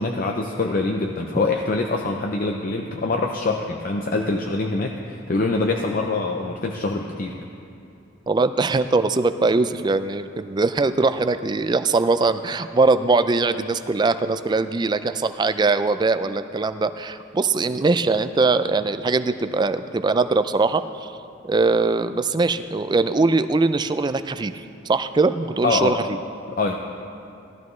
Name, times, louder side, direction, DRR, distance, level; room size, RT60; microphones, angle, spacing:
voice 1, 0.0-7.4 25.6-26.0 26.5-26.7, left 3 dB, 45° left, 2 dB, 0.5 m, -24 dB
voice 2, 8.3-21.1 21.4-24.5 24.9-26.2, right 3 dB, 20° right, 11 dB, 0.3 m, -21 dB
16.5 x 12.5 x 3.2 m, 2.6 s
head